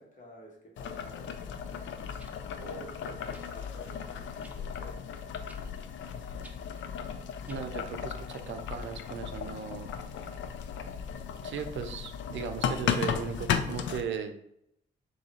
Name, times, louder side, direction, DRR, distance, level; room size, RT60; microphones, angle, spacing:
voice 1, 0.0-1.4 2.6-5.0, right 1 dB, 40° left, -1 dB, 1.6 m, -49 dB
Boiling, 0.8-14.0, left 7 dB, 90° left, 0.4 m, -36 dB
sound 1, 1.1-1.2 2.2-2.4 3.3-3.5 4.4-4.6 5.5-5.7 6.4-6.6 7.5-7.6 8.6-8.7, right 1 dB, 10° right, 0.6 m, -54 dB
voice 2, 7.5-9.9 11.4-14.3, right 7 dB, 85° right, 7 dB, 0.5 m, -37 dB
3.8 x 2.7 x 4.2 m, 0.77 s
cardioid pair, 70°, 19 cm